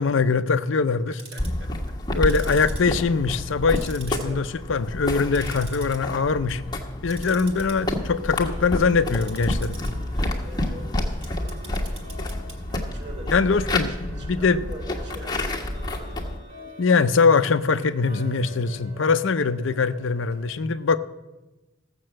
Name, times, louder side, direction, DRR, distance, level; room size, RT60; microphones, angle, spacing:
voice 1, 0.0-1.1 2.1-6.6 7.0-9.8 13.3-13.9 14.2-14.6 16.8-21.0, left 4 dB, 80° left, 12 dB, 0.6 m, -22 dB
Tick-tock, 1.0-1.6 2.2-3.5 3.8-4.6 5.0-6.0 6.3-6.6 7.0-20.4, right 2 dB, 30° right, 2.0 m, -46 dB
voice 2, 1.1-2.2 4.2-4.5 10.1-12.0 12.7-15.6, equal, 60° right, 1 dB, 2.0 m, -44 dB
sound 1, 1.4-16.4, left 1 dB, 20° left, 1.4 m, -29 dB
15.5 x 6.6 x 7.6 m, 1.1 s
head